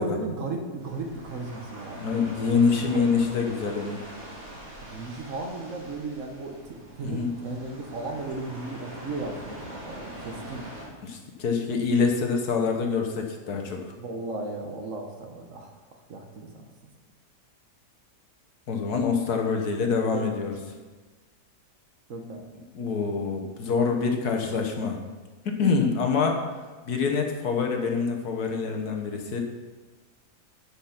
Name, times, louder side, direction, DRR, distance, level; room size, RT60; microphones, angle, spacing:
voice 1, 0.0-2.2 2.9-3.0 4.8-10.6 14.0-15.7 16.1-16.7 20.1-20.6 22.1-22.4, right 3 dB, 55° right, 3 dB, 1.3 m, -35 dB
sound 1, 0.8-10.8, right 1 dB, 75° right, 3.3 m, -43 dB
voice 2, 2.0-4.0 7.0-7.3 11.0-13.8 18.7-20.6 22.7-25.0 25.6-26.4 26.9-29.4, left 5 dB, 70° left, 3 dB, 1.6 m, -25 dB
9.8 x 5.9 x 5.9 m, 1.3 s
omnidirectional pair, 1.8 m